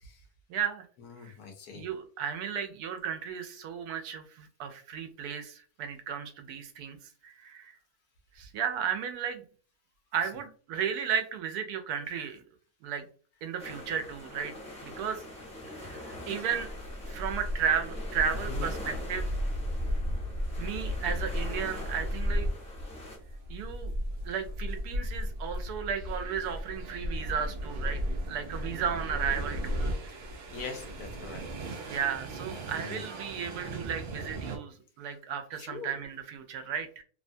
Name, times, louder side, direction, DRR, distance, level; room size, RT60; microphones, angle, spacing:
voice 1, 0.5-0.9 1.2-1.3 1.7-7.0 7.2-7.8 8.4-9.4 10.1-12.4 12.8-13.0 13.4-14.5 14.8-15.2 15.8-16.7 17.1-19.3 20.6-22.5 23.5-23.9 24.2-29.8 31.9-37.0, right 7 dB, 85° right, 6 dB, 1.1 m, -34 dB
voice 2, 1.1-1.8 18.5-18.7 30.5-31.4 32.8-33.0 35.7-35.9, left 5 dB, 80° left, 5 dB, 1.2 m, -41 dB
sound 1, 13.6-23.2, left 1 dB, 5° left, 0.6 m, -44 dB
sound 2, 16.5-34.6, equal, 60° right, 0.7 m, -35 dB
3.0 x 2.2 x 2.5 m, 0.42 s
omnidirectional pair, 1.6 m